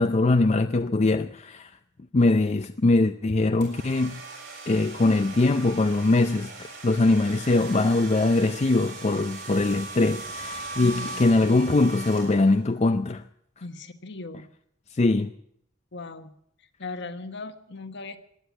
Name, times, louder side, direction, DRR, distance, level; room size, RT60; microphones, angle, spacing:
voice 1, 0.0-1.7 2.1-4.2 4.7-13.2 14.9-15.3, left 2 dB, 35° left, 0.5 m, -22 dB
sound 1, 3.6-12.7, right 3 dB, 70° right, 7.2 m, -39 dB
voice 2, 10.8-11.2 13.6-14.5 15.9-16.3 16.8-18.2, left 3 dB, 65° left, 1.3 m, -38 dB
16.0 x 10.0 x 8.4 m
head